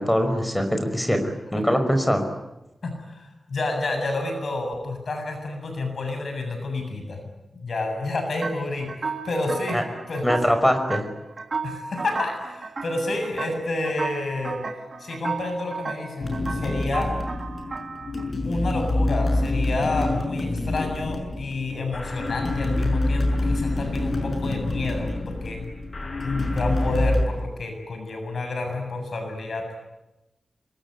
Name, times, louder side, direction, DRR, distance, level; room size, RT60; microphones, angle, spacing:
voice 1, 0.0-2.3 9.7-9.8 10.2-11.0, equal, 5° left, 6 dB, 5.4 m, -22 dB
voice 2, 2.8-7.3 7.6-9.8 10.1-10.3 11.6-14.6 15.0-17.1 18.4-25.7 26.2-29.8, left 2 dB, 65° left, 4 dB, 7.4 m, -29 dB
sound 1, 8.4-18.3, right 4 dB, 50° right, 2.2 m, -34 dB
sound 2, 16.2-27.2, left 2 dB, 45° left, 6.0 m, -26 dB
26.5 x 23.0 x 9.7 m, 0.94 s
wide cardioid pair, 130°, 0 cm